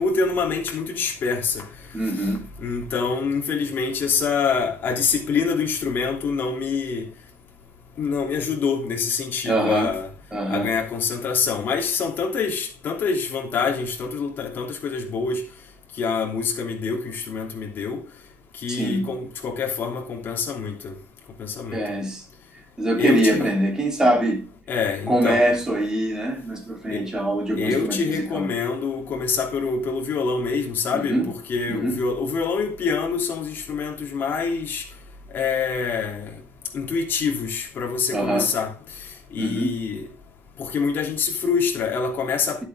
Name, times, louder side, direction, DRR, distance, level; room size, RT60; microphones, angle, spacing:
voice 1, 0.0-1.6 2.6-7.1 8.0-10.1 10.5-15.4 16.0-18.0 18.6-20.9 21.4-21.8 23.0-23.5 24.7-25.5 26.9-27.0 27.5-34.8 35.3-36.3 36.7-38.7 39.3-40.1 40.6-42.6, left 5 dB, 45° left, 3.0 m, -25 dB
voice 2, 1.9-2.5 9.4-9.9 10.3-10.7 18.7-19.1 21.7-22.2 22.8-24.5 25.1-28.5 30.9-31.3 31.7-32.0 38.1-38.5 39.4-39.8, right 1 dB, 15° right, 3.3 m, -23 dB
11.5 x 8.1 x 3.7 m
cardioid pair, 160°, 5 cm